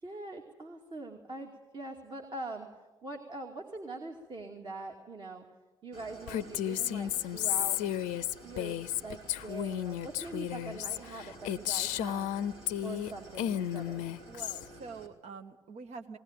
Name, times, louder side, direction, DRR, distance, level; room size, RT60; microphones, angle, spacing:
voice 1, 0.0-2.7 3.0-5.4 5.8-7.8 8.4-12.3 12.8-14.0, right 2 dB, 35° right, 2 dB, 2.5 m, -43 dB
Idling, 5.9-15.1, right 1 dB, 75° right, 3.2 m, -52 dB
Female speech woman speaking, 6.3-13.1 13.4-14.7, left 11 dB, 65° left, 0.7 m, -33 dB
voice 2, 14.3-16.2, right 5 dB, 55° right, 7 dB, 1.7 m, -45 dB
20.0 x 19.0 x 9.1 m, 1.2 s
figure-of-eight pair, 50°, 14 cm